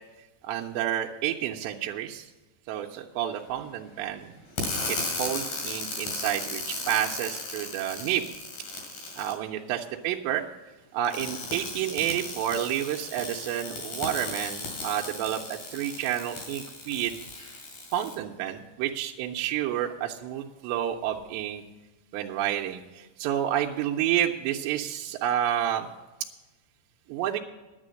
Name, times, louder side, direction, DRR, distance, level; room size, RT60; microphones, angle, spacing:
voice 1, 0.5-2.3 2.7-4.4 4.9-8.3 9.2-10.4 10.9-17.1 17.9-21.6 22.1-25.9 27.1-27.4, right 11 dB, 85° right, 0 dB, 2.8 m, -30 dB
sound 1, 4.6-9.3 11.0-18.1, left 2 dB, 55° left, 3.6 m, -36 dB
10.5 x 9.0 x 6.3 m, 1.1 s
omnidirectional pair, 5.0 m